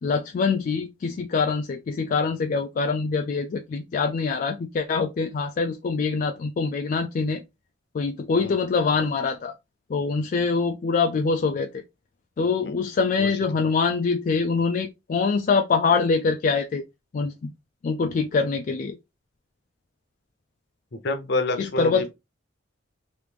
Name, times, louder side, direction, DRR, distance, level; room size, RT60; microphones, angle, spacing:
voice 1, 0.0-7.4 7.9-9.5 9.9-11.8 12.4-16.8 17.1-17.5 17.8-19.0 21.6-22.1, left 4 dB, 45° left, 0.3 m, -24 dB
voice 2, 20.9-22.1, left 2 dB, 65° left, 0.7 m, -27 dB
3.1 x 2.5 x 3.3 m
head